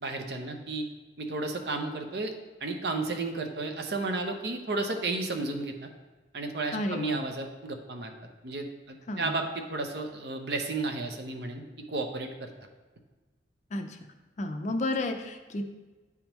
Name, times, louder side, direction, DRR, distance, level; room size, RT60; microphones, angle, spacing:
voice 1, 0.0-0.9 1.2-2.3 2.6-5.9 6.3-8.1 8.4-12.5, right 3 dB, 60° right, 4 dB, 0.7 m, -33 dB
voice 2, 6.7-7.2 9.1-9.4 13.7-14.0 14.4-15.6, left 1 dB, 40° left, 6 dB, 0.5 m, -32 dB
9.5 x 3.5 x 3.0 m, 1.2 s
head